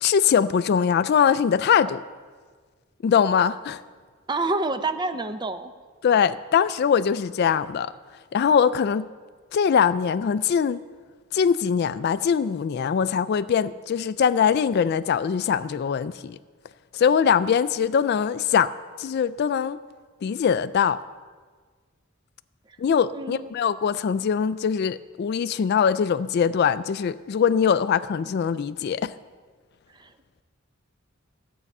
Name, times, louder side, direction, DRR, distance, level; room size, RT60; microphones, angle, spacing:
voice 1, 0.0-2.0 3.0-3.8 6.0-7.9 8.3-9.1 9.5-10.8 11.3-16.4 16.9-18.7 19.0-19.8 20.2-21.0 22.8-29.1, left 7 dB, 50° left, 15 dB, 0.3 m, -22 dB
voice 2, 4.3-5.7 23.1-23.5 30.0-30.1, right 3 dB, 20° right, 10 dB, 0.5 m, -27 dB
13.5 x 8.2 x 5.4 m, 1.5 s
head